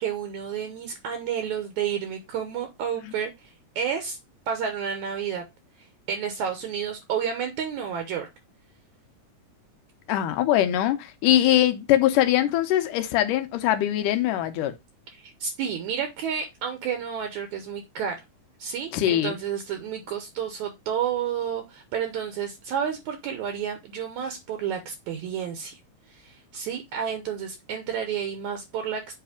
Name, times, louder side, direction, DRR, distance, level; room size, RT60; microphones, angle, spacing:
voice 1, 0.0-4.2 4.5-5.4 6.1-8.3 15.1-18.2 18.6-25.8 26.1-29.0, right 8 dB, 70° right, 2.1 m, -30 dB
voice 2, 10.1-14.7 18.9-19.3, left 12 dB, 80° left, 2.2 m, -22 dB
7.9 x 3.2 x 4.9 m
omnidirectional pair, 3.8 m